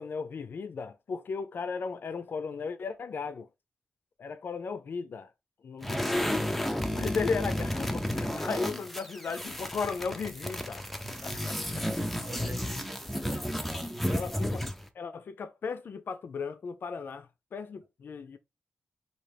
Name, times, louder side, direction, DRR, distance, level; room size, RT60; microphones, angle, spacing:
voice 1, 0.0-3.5 4.2-5.3 5.6-6.3 6.9-10.9 11.2-11.5 14.1-14.6 14.9-18.4, left 5 dB, 60° left, 0.5 m, -36 dB
sound 1, 5.8-14.9, left 1 dB, 5° left, 0.5 m, -32 dB
voice 2, 11.0-14.6, right 3 dB, 45° right, 0.8 m, -48 dB
5.6 x 2.8 x 3.4 m
wide cardioid pair, 175°, 4 cm